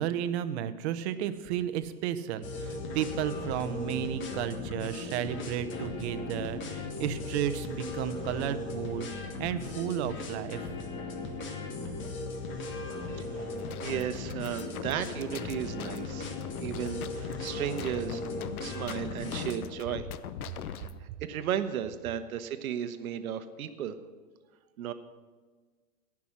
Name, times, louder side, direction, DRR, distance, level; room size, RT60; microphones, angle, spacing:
voice 1, 0.0-10.6, right 10 dB, 45° right, 12 dB, 0.9 m, -33 dB
sound 1, 2.4-19.6, left 3 dB, 25° left, 1.5 m, -37 dB
voice 2, 13.2-13.5 13.8-16.3 16.6-18.2 18.6-20.1 20.7-23.9 24.8-24.9, right 9 dB, 70° right, 11 dB, 1.1 m, -34 dB
sound 2, 13.5-21.0, left 10 dB, 70° left, 0.8 m, -42 dB
17.5 x 6.1 x 6.1 m, 1.4 s
hypercardioid pair, 125°, 44 cm